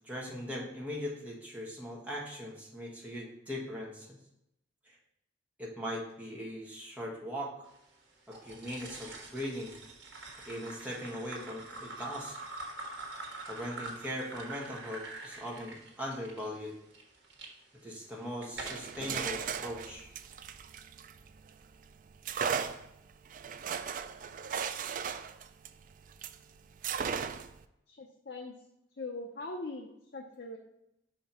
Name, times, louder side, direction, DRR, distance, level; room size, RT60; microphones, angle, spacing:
voice 1, 0.0-4.1 4.9-5.0 5.6-7.5 8.3-9.8 10.4-12.4 13.5-16.8 17.8-20.1, equal, 10° right, -3 dB, 1.4 m, -40 dB
sound 1, 8.3-17.5 18.1-19.0, right 2 dB, 65° right, 1.5 m, -45 dB
sound 2, 18.5-21.6 22.2-26.4 26.8-27.6, right 7 dB, 45° right, 0.3 m, -37 dB
voice 2, 27.9-28.6 29.0-30.6, left 2 dB, 55° left, 1 dB, 0.7 m, -41 dB
5.6 x 4.5 x 5.4 m, 0.81 s
head